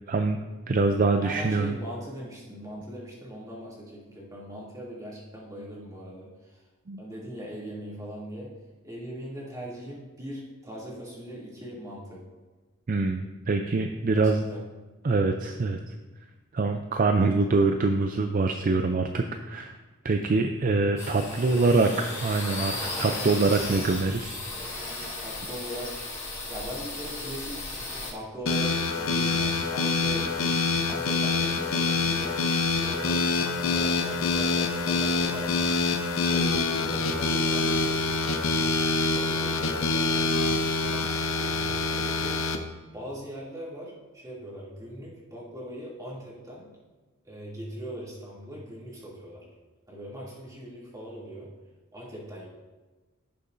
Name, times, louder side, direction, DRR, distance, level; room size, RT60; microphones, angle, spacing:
voice 1, 0.1-0.4 0.7-1.8 6.9-7.0 12.9-14.4 15.0-15.9 16.5-19.7 20.0-24.4 24.7-24.9, right 3 dB, 40° right, 5 dB, 0.4 m, -24 dB
voice 2, 1.2-6.6 7.0-8.5 8.8-12.2 14.1-14.6 21.3-21.9 25.2-26.0 26.5-27.7 28.1-30.5 30.9-35.8 36.2-38.8 39.1-41.1 41.3-42.4 42.9-46.7 47.2-49.4 49.9-51.5 51.9-52.5, equal, 15° right, -6 dB, 2.6 m, -40 dB
sound 1, 21.0-28.1, left 2 dB, 15° left, 2.6 m, -35 dB
sound 2, 28.5-42.6, left 3 dB, 70° left, 0.8 m, -26 dB
16.5 x 6.8 x 2.6 m, 1.2 s
head